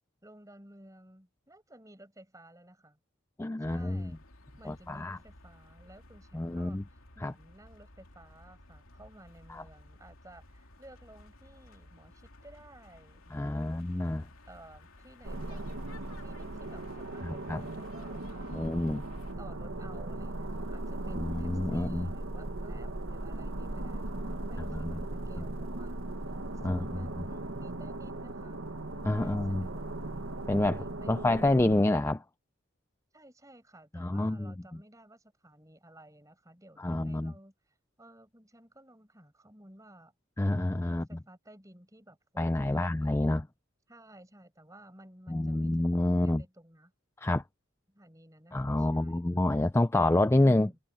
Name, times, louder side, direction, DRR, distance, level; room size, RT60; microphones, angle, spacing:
voice 1, 0.2-3.0 3.6-4.2 4.6-13.8 14.5-15.6 16.2-18.7 19.4-26.0 26.6-28.6 29.1-29.9 30.6-31.7 33.1-40.1 40.9-43.2 43.9-46.9 47.9-49.5 50.3-50.8, right 1 dB, 15° right, 5.4 m, -55 dB
voice 2, 3.4-4.1 4.7-5.2 6.3-6.8 7.2-7.3 9.5-9.6 13.3-14.2 17.2-17.6 18.5-19.0 21.2-22.1 24.6-25.0 26.6-26.8 29.0-29.7 30.5-32.2 33.9-34.5 36.8-37.3 40.4-41.0 42.4-43.5 45.3-46.4 47.2-47.4 48.5-50.7, left 1 dB, 10° left, 0.3 m, -28 dB
sound 1, 3.6-19.4, left 2 dB, 75° left, 2.9 m, -55 dB
sound 2, 15.2-31.8, right 2 dB, 70° right, 1.6 m, -38 dB
head